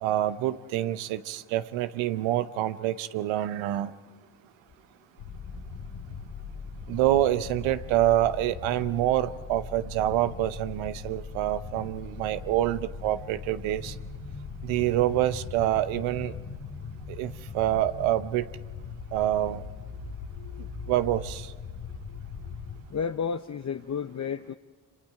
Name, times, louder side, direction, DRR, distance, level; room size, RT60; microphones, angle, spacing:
voice 1, 0.0-3.9 6.9-13.9 14.6-16.3 17.2-18.5 19.1-19.6 20.9-21.5, right 13 dB, 90° right, 13 dB, 0.8 m, -26 dB
sound 1, 5.2-22.8, left 5 dB, 80° left, 2.3 m, -40 dB
voice 2, 20.3-20.9 22.1-22.2 22.5-22.6 22.9-24.5, left 6 dB, 35° left, 8 dB, 0.8 m, -33 dB
27.0 x 26.5 x 4.9 m, 1.5 s
supercardioid pair, 45°, 45 cm